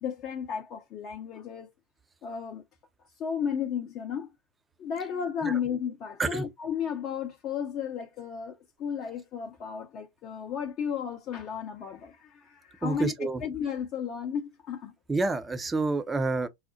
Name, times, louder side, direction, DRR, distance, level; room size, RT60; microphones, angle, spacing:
voice 1, 0.0-1.7 2.2-2.6 3.0-4.3 4.8-14.9, left 7 dB, 35° left, 0.6 m, -34 dB
voice 2, 12.8-13.4 15.1-16.5, right 3 dB, 10° right, 0.6 m, -28 dB
5.5 x 2.0 x 2.7 m
figure-of-eight pair, 90°, 0 cm